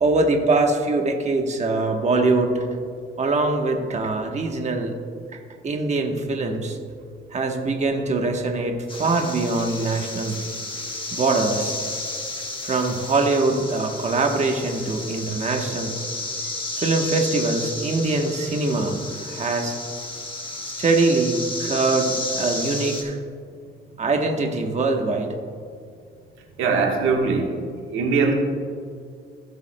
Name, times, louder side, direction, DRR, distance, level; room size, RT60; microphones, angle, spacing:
voice 1, 0.0-2.7 3.2-4.9 5.3-6.8 7.3-10.4 11.1-11.8 12.6-15.9 16.8-19.7 20.6-23.2 24.0-25.3, right 3 dB, 35° right, 3 dB, 1.1 m, -23 dB
sound 1, 8.9-23.0, left 2 dB, 25° left, 1.5 m, -32 dB
voice 2, 26.6-27.6 27.9-28.3, right 4 dB, 90° right, 1 dB, 1.4 m, -21 dB
17.0 x 6.9 x 2.2 m, 2.3 s
cardioid pair, 90°, 20 cm